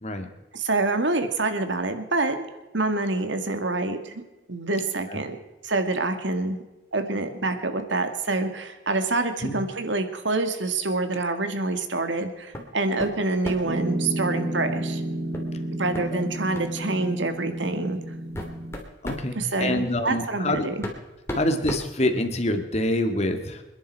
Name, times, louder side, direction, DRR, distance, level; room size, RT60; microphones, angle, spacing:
voice 1, 0.5-2.4 2.7-4.2 4.5-5.4 5.6-6.6 6.9-15.0 15.8-18.0 19.4-20.9, right 2 dB, 75° right, 8 dB, 1.9 m, -26 dB
sound 1, 12.5-12.7 13.0-13.8 15.3-15.5 15.9-16.1 16.5-16.7 17.6-17.7 18.1-19.3 20.3-20.4 20.8-22.6, left 1 dB, 15° left, 2.8 m, -34 dB
Piano, 13.6-18.7, right 1 dB, 55° right, 2.6 m, -31 dB
voice 2, 19.0-20.7 21.3-23.6, left 1 dB, 35° left, 6 dB, 1.9 m, -26 dB
27.5 x 11.0 x 4.6 m, 1.1 s
head